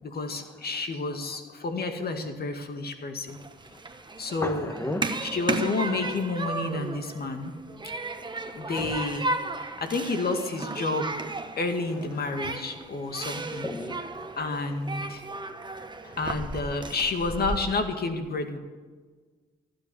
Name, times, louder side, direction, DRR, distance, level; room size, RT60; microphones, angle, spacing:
voice 1, 0.0-3.4 4.2-4.7 5.2-7.5 8.5-9.3 9.6-13.7 14.4-15.2 16.0-18.6, left 3 dB, 50° left, 6 dB, 2.0 m, -30 dB
Human group actions, 3.3-17.6, right 3 dB, 25° right, 1.2 m, -35 dB
voice 2, 4.4-5.0 13.6-14.3, left 1 dB, 15° left, 7 dB, 1.3 m, -33 dB
15.0 x 9.7 x 7.1 m, 1.4 s
supercardioid pair, 65°, 20 cm